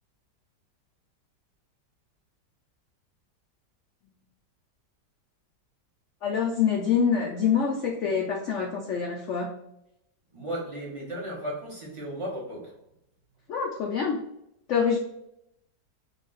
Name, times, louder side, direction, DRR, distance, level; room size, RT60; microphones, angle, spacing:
voice 1, 6.2-9.5 13.5-14.2 14.7-15.0, left 6 dB, 85° left, 0 dB, 0.6 m, -25 dB
voice 2, 10.3-12.7, equal, 25° right, -4 dB, 0.7 m, -35 dB
3.4 x 2.4 x 3.8 m, 0.80 s
omnidirectional pair, 1.9 m